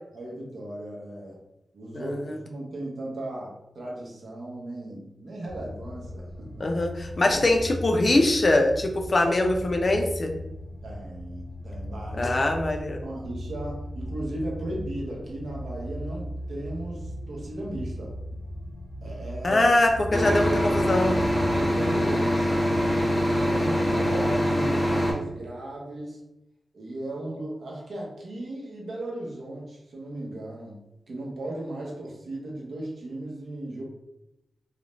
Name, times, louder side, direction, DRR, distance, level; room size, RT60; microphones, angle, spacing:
voice 1, 0.1-1.4 1.7-6.7 7.3-7.4 10.8-12.4 13.0-18.1 19.0-19.6 21.4-26.2 26.7-33.8, right 1 dB, 80° right, -2 dB, 0.7 m, -36 dB
sound 1, 5.5-21.8, equal, 75° left, 0.7 m, -37 dB
voice 2, 6.6-10.3 12.1-13.0 19.4-21.2, left 2 dB, 40° left, 3 dB, 0.3 m, -23 dB
sound 2, 20.1-25.1, equal, 5° left, 0.7 m, -24 dB
2.4 x 2.0 x 3.0 m, 0.90 s
wide cardioid pair, 105°, 0 cm